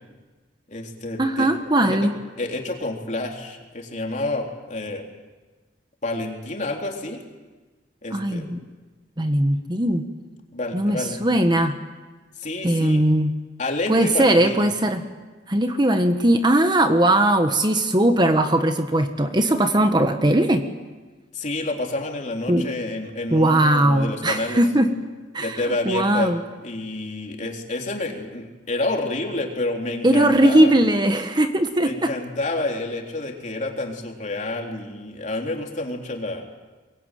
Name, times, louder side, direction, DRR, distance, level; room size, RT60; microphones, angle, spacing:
voice 1, 0.7-1.5 1.8-2.1 2.4-5.0 6.0-7.2 8.0-8.5 10.5-11.2 12.4-13.0 13.6-14.7 21.3-24.6 25.4-26.3 26.6-30.7 31.8-36.4, left 2 dB, 45° left, 1 dB, 3.7 m, -29 dB
voice 2, 1.2-2.1 8.1-8.6 9.2-10.0 10.7-11.7 12.6-13.3 13.9-15.0 15.5-20.6 22.5-22.7 23.3-24.9 25.3-25.6 25.8-26.4 30.0-32.1, right 1 dB, 25° right, 7 dB, 1.4 m, -19 dB
23.0 x 22.0 x 9.3 m, 1.3 s
head